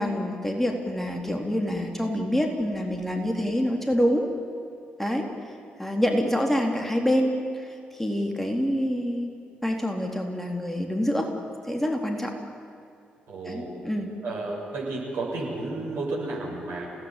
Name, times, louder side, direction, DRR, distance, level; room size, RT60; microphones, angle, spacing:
voice 1, 0.0-4.3 5.0-5.3 5.8-9.3 9.6-11.3 11.7-12.3 13.5-14.1, equal, 5° left, 2 dB, 4.0 m, -26 dB
voice 2, 13.3-13.7 14.2-16.9, right 2 dB, 60° right, -1 dB, 6.8 m, -32 dB
28.5 x 18.0 x 9.1 m, 2.5 s
figure-of-eight pair, 40°, 4 cm